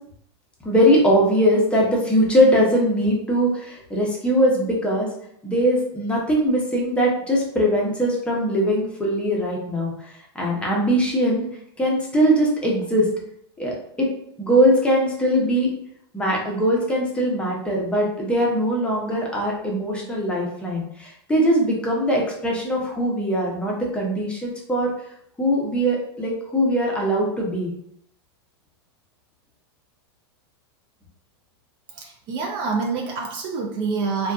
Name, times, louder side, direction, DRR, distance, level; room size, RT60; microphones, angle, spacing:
voice 1, 0.6-5.1 5.4-11.4 11.8-13.1 13.6-14.1 14.4-15.7 16.1-24.9 25.4-27.7, equal, 10° left, -3 dB, 0.6 m, -21 dB
voice 2, 31.9-34.3, right 4 dB, 40° right, 1 dB, 0.4 m, -27 dB
2.5 x 2.2 x 2.3 m, 0.70 s
supercardioid pair, 130°, 14 cm